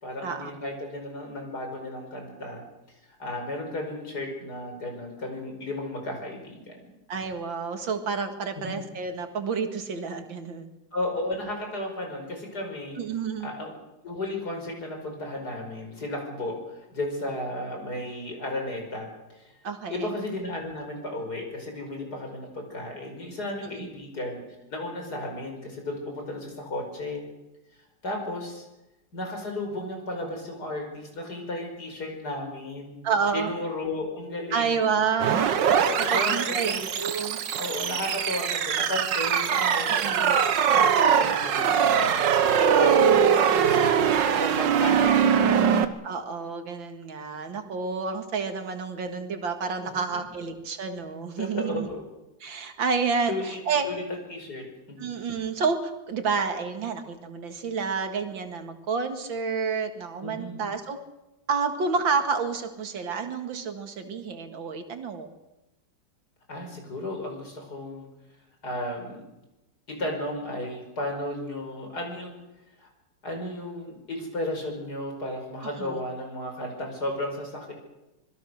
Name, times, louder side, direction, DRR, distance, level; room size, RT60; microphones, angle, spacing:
voice 1, 0.0-2.6 3.1-6.8 8.7-8.8 10.9-13.0 13.4-19.1 19.3-19.5 19.9-24.4 24.7-27.2 28.0-28.7 29.1-33.0 33.3-34.8 35.8-36.8 37.6-43.1 43.6-45.7 49.9-50.2 51.4-52.1 53.3-54.0 54.3-55.1 60.2-60.7 66.5-68.1 68.6-69.2 69.9-72.4 72.8-72.9 73.2-77.7, left 1 dB, 55° left, 3 dB, 5.8 m, -34 dB
voice 2, 7.1-10.7 13.0-13.5 19.6-20.1 23.6-23.9 33.0-33.5 34.5-35.6 36.1-37.4 39.9-40.4 46.0-51.9 52.4-53.9 55.0-61.0 61.5-65.3 75.8-76.0, right 5 dB, 85° right, 6 dB, 2.7 m, -29 dB
sound 1, 35.2-45.8, right 7 dB, 70° right, 1.8 m, -22 dB
26.0 x 21.0 x 6.5 m, 0.98 s
omnidirectional pair, 2.1 m